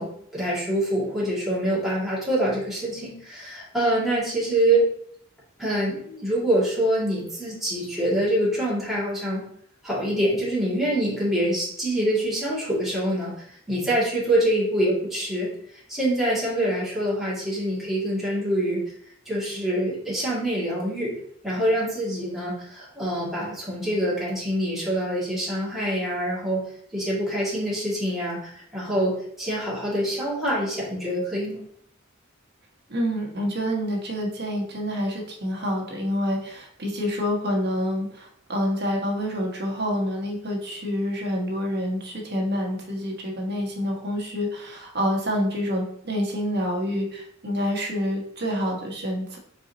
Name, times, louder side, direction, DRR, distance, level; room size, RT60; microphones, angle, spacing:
voice 1, 0.0-4.9 5.6-9.4 9.8-13.4 13.7-15.5 15.9-18.8 19.3-21.2 21.4-26.6 26.9-31.6, right 1 dB, ahead, -8 dB, 1.9 m, -25 dB
voice 2, 32.9-49.4, equal, 50° right, -1 dB, 1.1 m, -27 dB
4.6 x 4.0 x 2.8 m, 0.66 s
head